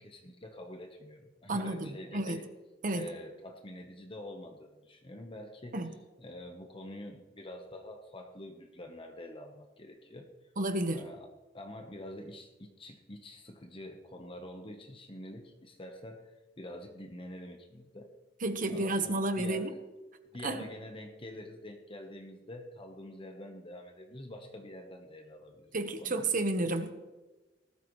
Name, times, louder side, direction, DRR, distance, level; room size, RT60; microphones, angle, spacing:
voice 1, 0.0-2.5 2.9-5.8 6.2-10.3 10.9-11.3 11.5-18.1 18.7-19.7 20.3-26.2, left 1 dB, 30° left, 3 dB, 1.1 m, -46 dB
voice 2, 1.5-2.4 2.8-3.0 5.7-5.9 10.6-11.0 18.4-19.7 20.4-20.7 25.7-26.9, right 2 dB, 45° right, 8 dB, 1.2 m, -31 dB
19.5 x 13.0 x 3.2 m, 1.2 s
head